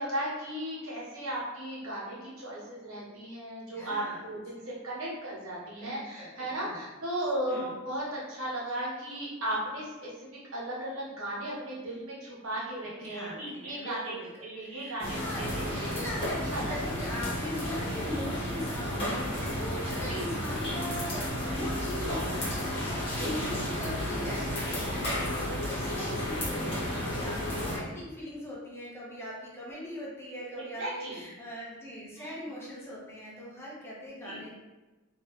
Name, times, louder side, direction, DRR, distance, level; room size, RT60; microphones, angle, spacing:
voice 1, 0.0-16.0 16.5-16.7 20.1-20.2 23.2-23.3 26.9-27.1 30.8-31.2 32.1-32.3 34.2-34.4, right 1 dB, 70° right, -6 dB, 1.2 m, -36 dB
voice 2, 3.7-4.2 5.8-6.8 7.4-7.7 13.1-34.5, equal, 10° left, -6 dB, 0.8 m, -41 dB
sound 1, 15.0-27.8, left 1 dB, 25° left, 1.3 m, -32 dB
3.1 x 2.9 x 3.1 m, 1.2 s
head